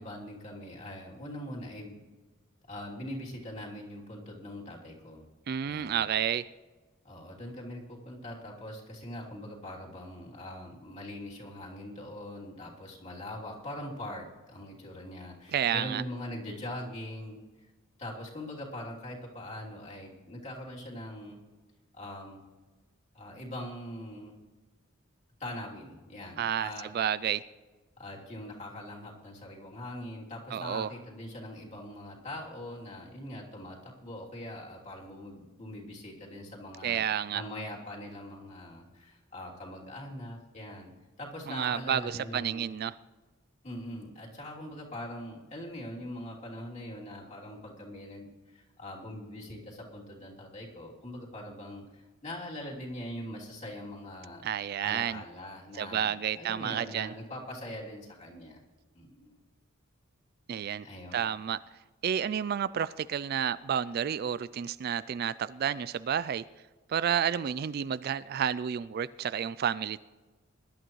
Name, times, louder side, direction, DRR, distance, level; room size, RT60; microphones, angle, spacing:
voice 1, 0.0-2.0 2.7-5.3 5.6-6.0 7.0-17.4 18.0-21.4 21.9-22.4 23.1-24.3 25.4-26.9 28.0-40.9 41.2-42.7 43.6-54.5 54.8-58.6 58.9-59.4 60.8-61.2, left 1 dB, 35° left, -3 dB, 3.1 m, -42 dB
voice 2, 5.5-6.5 15.5-16.0 26.4-27.4 30.5-30.9 36.8-37.4 41.5-42.9 54.4-55.2 55.8-57.1 60.5-60.9 61.1-61.6 62.0-66.4 66.9-70.0, right 8 dB, 45° right, 17 dB, 0.3 m, -30 dB
21.0 x 11.5 x 3.1 m, 1.3 s
head